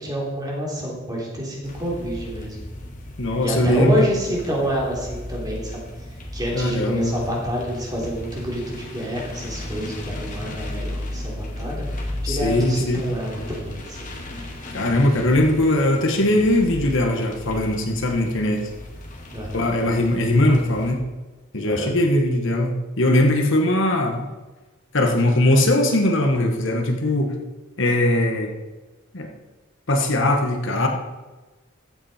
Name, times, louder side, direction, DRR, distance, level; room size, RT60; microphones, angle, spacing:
voice 1, 0.0-2.6 3.4-5.8 6.3-11.9 12.2-14.1 19.3-19.7 21.6-21.9, equal, 20° right, -3 dB, 3.4 m, -28 dB
sound 1, 1.6-20.9, left 1 dB, 40° left, 2.2 m, -35 dB
voice 2, 3.2-4.1 6.5-7.1 12.2-13.1 14.7-18.6 19.5-21.0 21.5-24.3 24.9-27.3 27.8-28.5 29.1-29.3 29.9-30.9, left 1 dB, 65° left, 2 dB, 1.5 m, -20 dB
15.0 x 8.8 x 4.4 m, 1.2 s
head